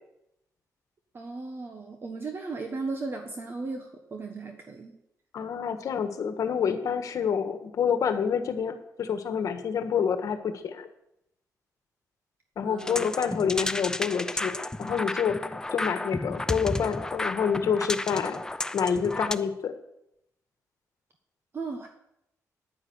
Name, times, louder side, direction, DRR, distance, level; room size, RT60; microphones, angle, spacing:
voice 1, 1.1-4.9 12.6-13.1 21.5-21.9, right 3 dB, 35° right, 4 dB, 1.3 m, -36 dB
voice 2, 5.3-10.9 12.6-18.4 18.7-19.7, left 7 dB, 65° left, 8 dB, 1.5 m, -28 dB
sound 1, 12.8-19.3, left 2 dB, 10° left, 0.5 m, -32 dB
10.0 x 9.8 x 8.0 m, 0.82 s
wide cardioid pair, 135°, 6 cm